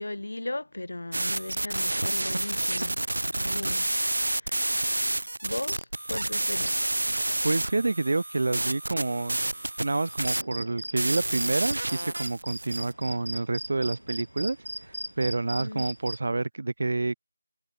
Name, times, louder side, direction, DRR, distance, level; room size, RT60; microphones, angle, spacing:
voice 1, 0.0-3.0 3.4-5.2 5.4-6.9 15.6-15.9, left 2 dB, 60° left, 3.6 m, -37 dB
sound 1, 1.1-12.9, right 1 dB, 65° right, 0.4 m, -29 dB
voice 2, 7.4-9.4 9.8-14.6 15.2-17.2, right 3 dB, 45° right, 2.5 m, -28 dB
sound 2, 10.1-16.2, right 1 dB, 80° right, 4.0 m, -39 dB
figure-of-eight pair, 165°, 0 cm